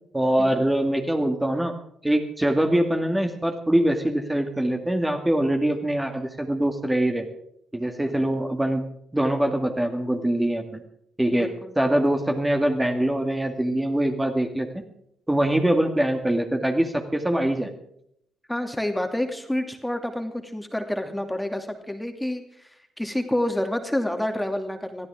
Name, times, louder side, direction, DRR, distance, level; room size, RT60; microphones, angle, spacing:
voice 1, 0.1-1.7 2.0-7.3 7.7-8.8 9.1-10.8 11.2-11.5 11.8-14.7 15.3-17.7, right 1 dB, 10° right, 3 dB, 2.4 m, -23 dB
voice 2, 11.3-11.7 18.5-25.1, left 1 dB, 5° left, 5 dB, 2.6 m, -28 dB
23.0 x 15.0 x 3.8 m, 0.75 s
hypercardioid pair, 45°, 0 cm